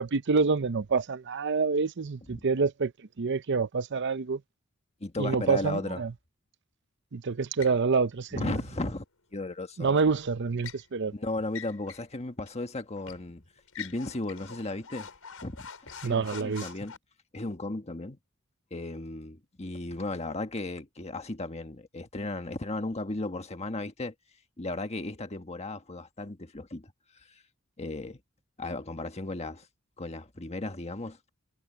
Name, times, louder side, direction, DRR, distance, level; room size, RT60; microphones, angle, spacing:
voice 1, 0.0-2.9 3.2-4.4 5.2-6.1 7.1-8.6 9.8-11.1 16.0-16.7, right 4 dB, 55° right, 0.6 m, -27 dB
voice 2, 5.0-6.0 8.3-9.0 9.3-10.0 11.1-13.4 13.8-15.1 15.4-17.0 17.3-18.2 18.7-24.1 24.6-26.9 27.8-28.2 28.6-29.7 30.0-31.2, left 2 dB, 30° left, 1.5 m, -35 dB
sound 1, 7.6-7.8 10.0-10.9 11.5-12.1 12.5-12.6 13.1-13.3 13.7-17.0, left 7 dB, 75° left, 6.5 m, -44 dB
head